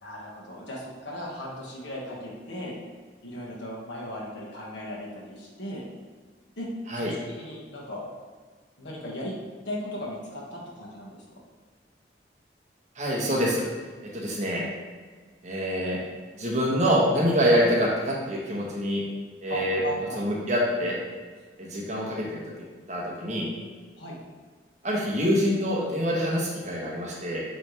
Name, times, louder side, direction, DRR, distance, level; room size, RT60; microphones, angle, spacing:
voice 1, 0.0-2.7 3.2-5.8 6.6-8.0 8.8-9.3 9.6-11.4 19.5-20.3 24.0-24.2, left 1 dB, 75° left, -4 dB, 1.5 m, -37 dB
voice 2, 13.0-13.6 14.1-14.6 15.4-16.0 16.4-19.0 19.4-19.8 20.2-20.9 21.6-22.4 22.9-23.5 24.8-27.4, equal, 40° right, -3 dB, 1.2 m, -25 dB
8.7 x 3.4 x 3.3 m, 1.5 s
head